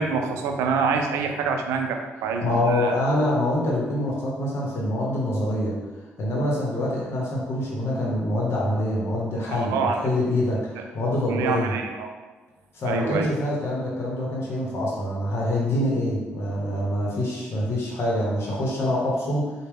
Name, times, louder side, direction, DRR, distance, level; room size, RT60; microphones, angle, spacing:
voice 1, 0.0-3.0 9.5-10.0 11.3-12.1 12.8-13.3, right 5 dB, 85° right, 4 dB, 0.4 m, -26 dB
voice 2, 2.4-5.8 6.2-11.7 12.7-19.5, left 1 dB, 65° left, -4 dB, 0.8 m, -25 dB
4.2 x 2.1 x 3.5 m, 1.2 s
supercardioid pair, 60°, 5 cm